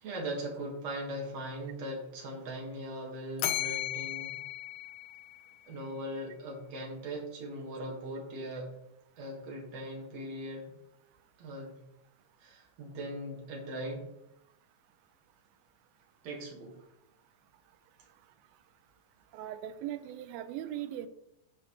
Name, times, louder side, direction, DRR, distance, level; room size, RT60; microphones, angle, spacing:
voice 1, 0.0-4.4 5.7-8.7 9.2-10.7 11.4-11.8 12.4-14.1 16.2-16.8, right 1 dB, 50° right, -2 dB, 2.3 m, -39 dB
Bell, 3.4-5.7, left 13 dB, 85° left, 1.9 m, -36 dB
voice 2, 19.3-21.1, right 11 dB, 85° right, 10 dB, 2.1 m, -39 dB
11.5 x 4.7 x 3.1 m, 0.83 s
omnidirectional pair, 4.5 m